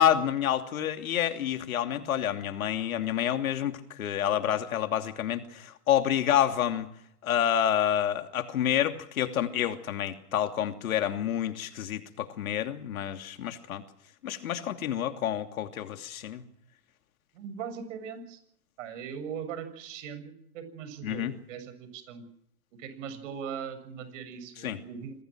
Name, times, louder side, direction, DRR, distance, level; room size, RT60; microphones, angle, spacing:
voice 1, 0.0-6.9 7.2-13.8 14.2-16.4 21.0-21.3 24.6-24.8, left 10 dB, 65° left, 7 dB, 2.9 m, -28 dB
voice 2, 17.3-18.4 18.8-22.2 22.7-25.1, right 7 dB, 55° right, 11 dB, 7.2 m, -40 dB
27.0 x 21.0 x 6.3 m, 0.72 s
hypercardioid pair, 115°, 46 cm